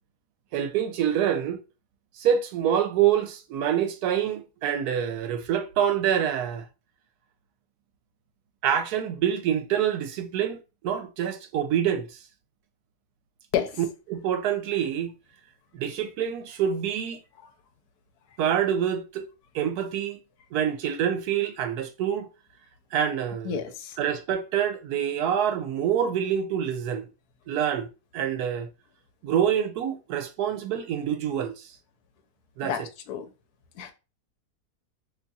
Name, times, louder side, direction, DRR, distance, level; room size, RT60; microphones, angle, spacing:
voice 1, 0.5-1.6 2.2-6.7 8.6-10.6 10.8-12.2 13.8-15.1 15.7-17.2 18.4-19.2 19.5-20.2 20.5-22.3 22.9-23.6 24.0-27.1 27.5-28.7 29.2-31.7 32.6-32.7, right 9 dB, 80° right, 1.1 m, -26 dB
voice 2, 23.4-24.0 32.6-33.3 33.8-33.9, left 9 dB, 80° left, 1.1 m, -30 dB
2.8 x 2.3 x 3.9 m
omnidirectional pair, 1.7 m